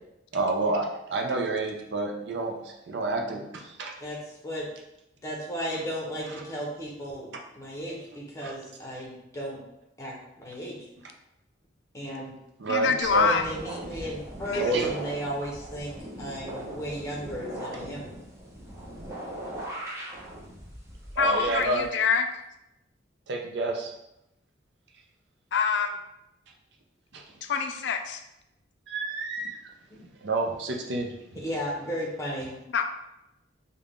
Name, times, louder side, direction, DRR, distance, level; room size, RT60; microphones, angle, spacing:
voice 1, 0.3-3.9 8.4-8.5 12.6-13.3 14.6-14.9 21.2-21.9 23.3-23.9 27.1-27.2 28.9-29.7 30.2-31.1, right 2 dB, 65° right, 1 dB, 0.5 m, -29 dB
voice 2, 4.0-4.7 5.2-9.6 10.0-10.9 11.9-12.3 12.8-12.9 13.2-18.1 29.9-30.0 31.3-32.6, equal, 15° left, -3 dB, 0.9 m, -35 dB
voice 3, 12.7-13.4 14.5-14.6 21.2-22.3 25.5-25.9 27.4-28.2 32.7-32.9, left 5 dB, 65° left, 7 dB, 0.4 m, -25 dB
sound 1, 13.0-21.9, right 1 dB, 15° right, 0.7 m, -40 dB
3.6 x 2.3 x 3.6 m, 0.86 s
head